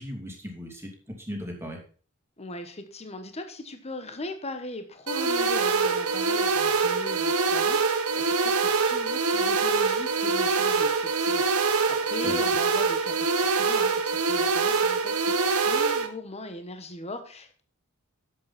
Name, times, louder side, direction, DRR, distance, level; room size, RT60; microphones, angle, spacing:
voice 1, 0.0-1.8 12.2-12.4, equal, 10° right, 1 dB, 2.6 m, -37 dB
voice 2, 2.4-17.6, left 1 dB, 30° left, 7 dB, 1.2 m, -39 dB
sound 1, 5.1-16.1, right 4 dB, 85° right, 1.3 m, -24 dB
11.0 x 8.0 x 4.2 m, 0.40 s
head